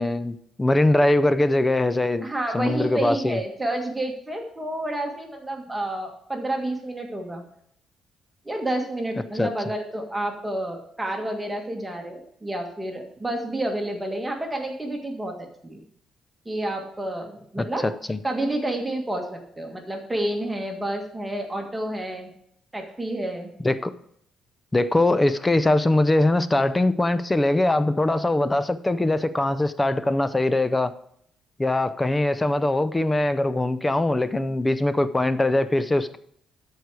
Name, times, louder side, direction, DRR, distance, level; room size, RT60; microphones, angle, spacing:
voice 1, 0.0-2.3 2.5-3.4 9.3-9.5 17.6-18.2 23.6-23.9 24.7-30.9 31.6-36.2, left 2 dB, 15° left, 13 dB, 0.5 m, -22 dB
voice 2, 2.2-7.5 8.5-15.8 16.5-17.9 18.2-22.3 22.7-23.5, right 1 dB, 15° right, 2 dB, 1.7 m, -29 dB
13.0 x 4.8 x 4.8 m, 0.67 s
cardioid pair, 90°, 0 cm